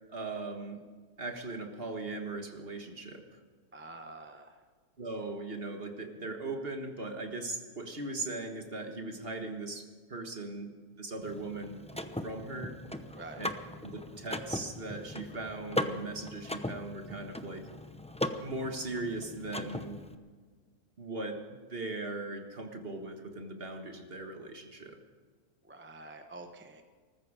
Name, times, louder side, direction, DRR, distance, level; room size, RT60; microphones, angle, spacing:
voice 1, 0.1-0.8 1.2-3.4 5.0-10.7 11.0-11.8 12.2-12.8 13.4-13.5 13.8-17.7 18.4-20.1 21.0-25.0, right 2 dB, 40° right, 4 dB, 1.8 m, -39 dB
voice 2, 3.7-4.6 13.1-13.4 25.6-26.8, right 2 dB, 10° right, 5 dB, 0.9 m, -47 dB
Car / Mechanisms, 11.2-20.2, left 1 dB, 10° left, 0.4 m, -39 dB
20.0 x 14.5 x 5.0 m, 1.5 s
omnidirectional pair, 1.6 m